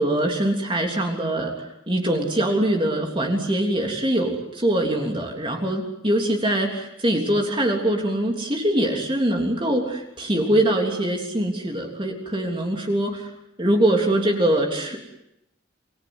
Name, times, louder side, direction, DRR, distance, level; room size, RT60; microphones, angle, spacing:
voice 1, 0.0-13.3 13.6-15.2, right 1 dB, 25° right, 2 dB, 3.3 m, -23 dB
29.5 x 20.5 x 8.0 m, 0.83 s
head